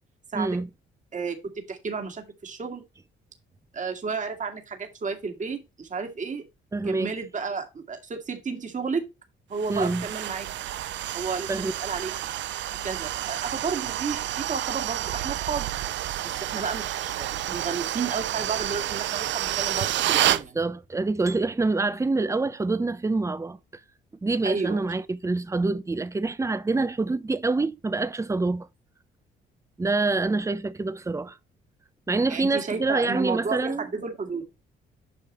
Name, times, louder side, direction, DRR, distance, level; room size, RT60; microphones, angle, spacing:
voice 1, 0.3-0.7 6.7-7.1 9.7-10.1 11.5-11.7 20.3-23.6 24.2-28.7 29.8-31.4 32.1-33.9, right 3 dB, 15° right, 0.7 m, -26 dB
voice 2, 1.7-2.8 3.7-6.4 6.9-9.0 9.5-10.5 11.1-11.5 11.8-12.2 12.8-15.7 16.4-20.6 24.4-24.8 32.3-34.4, right 5 dB, 40° right, 2.0 m, -32 dB
sound 1, 9.6-20.4, right 13 dB, 65° right, 0.5 m, -29 dB
8.6 x 5.6 x 3.1 m
cardioid pair, 90°, 20 cm